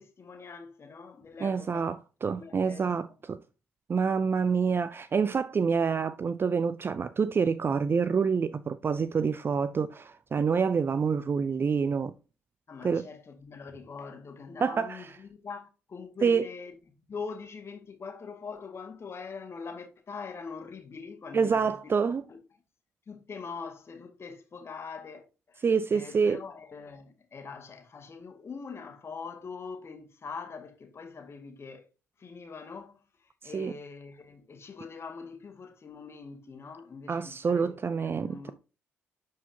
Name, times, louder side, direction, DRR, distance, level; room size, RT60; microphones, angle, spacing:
voice 1, 0.0-1.9 2.3-2.8 12.7-16.7 17.1-21.9 22.3-22.4 23.1-25.6 25.9-31.9 32.2-38.5, left 5 dB, 40° left, 1.9 m, -43 dB
voice 2, 1.4-3.4 3.9-12.1 12.8-13.1 14.6-15.1 16.2-16.5 21.3-22.2 25.6-26.4 33.4-33.7 37.1-38.5, right 5 dB, 35° right, 0.4 m, -27 dB
11.0 x 4.7 x 2.8 m
figure-of-eight pair, 40°, 6 cm